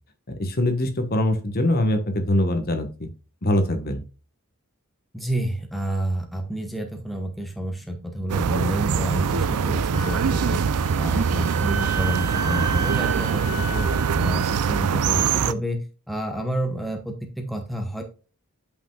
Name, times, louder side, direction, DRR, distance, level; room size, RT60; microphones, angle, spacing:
voice 1, 0.3-3.1 3.4-4.0, left 1 dB, 45° left, 8 dB, 1.2 m, -23 dB
voice 2, 5.1-10.6 11.0-13.9 14.2-18.0, right 1 dB, ahead, 3 dB, 0.9 m, -29 dB
sound 1, 8.3-15.5, right 6 dB, 85° right, 0.4 m, -23 dB
Wind instrument woodwind instrument, 9.9-15.1, right 6 dB, 35° right, 1.6 m, -33 dB
8.6 x 5.5 x 2.3 m, 0.34 s
head